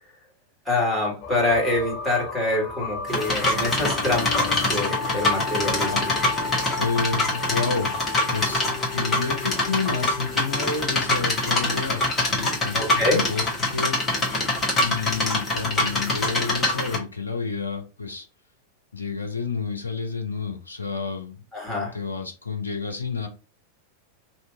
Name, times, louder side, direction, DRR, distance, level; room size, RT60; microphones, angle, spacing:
voice 1, 0.7-6.1 12.8-13.2 21.5-21.9, left 2 dB, 5° left, -4 dB, 1.8 m, -25 dB
sound 1, 1.2-10.9, left 4 dB, 45° left, 0.8 m, -34 dB
sound 2, 3.1-17.0, left 2 dB, 20° left, 1.4 m, -25 dB
voice 2, 6.8-7.9 8.3-14.0 14.8-18.3 18.9-21.4 21.9-23.3, left 4 dB, 80° left, 3 dB, 0.8 m, -30 dB
2.9 x 2.8 x 3.4 m, 0.32 s
figure-of-eight pair, 90°, 0 cm